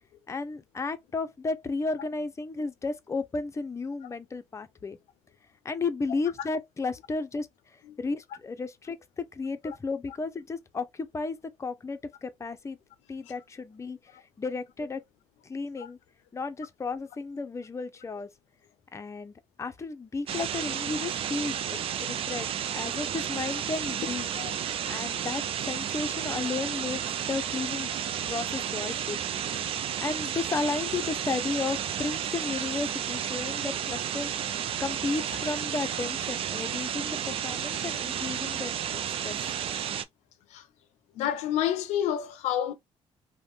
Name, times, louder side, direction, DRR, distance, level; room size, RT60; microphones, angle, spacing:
voice 1, 0.3-5.0 5.6-7.5 8.0-12.8 13.1-14.0 14.4-15.0 15.4-16.0 16.3-18.3 18.9-19.3 19.6-24.3 24.9-27.0 27.3-27.9 28.3-29.2 30.0-34.5 34.8-39.4, left 4 dB, 25° left, 0.5 m, -33 dB
sound 1, 20.3-40.0, right 9 dB, 55° right, 0.4 m, -32 dB
voice 2, 41.2-42.7, left 10 dB, 85° left, 0.4 m, -29 dB
2.5 x 2.1 x 3.4 m
cardioid pair, 80°, 11 cm